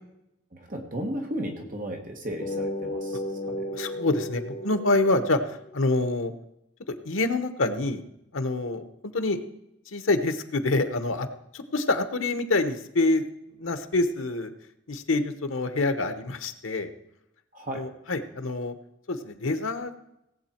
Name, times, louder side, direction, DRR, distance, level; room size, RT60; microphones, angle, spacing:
voice 1, 0.5-3.6 17.5-17.8, equal, 40° right, 3 dB, 1.4 m, -34 dB
sound 1, 2.4-5.9, left 1 dB, 40° left, 1.0 m, -34 dB
voice 2, 3.7-6.3 6.9-8.0 8.3-9.4 9.9-11.3 11.5-13.3 13.6-14.5 14.9-16.9 17.7-18.7 19.1-19.9, left 2 dB, 85° left, 9 dB, 1.0 m, -26 dB
17.5 x 7.8 x 4.4 m, 0.83 s
head